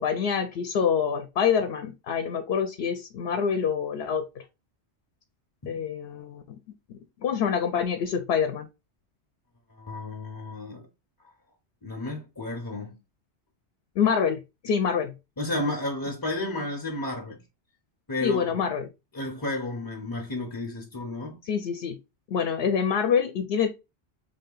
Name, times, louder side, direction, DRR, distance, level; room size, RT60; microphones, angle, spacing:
voice 1, 0.0-4.3 5.7-6.4 6.9-8.7 14.0-15.1 18.2-18.9 21.4-22.0 22.3-23.7, left 7 dB, 70° left, 0.8 m, -26 dB
voice 2, 9.8-10.9 11.8-13.0 15.4-17.4 18.1-18.7 19.1-21.5, left 2 dB, 25° left, 0.6 m, -32 dB
3.6 x 2.8 x 3.7 m
omnidirectional pair, 1.1 m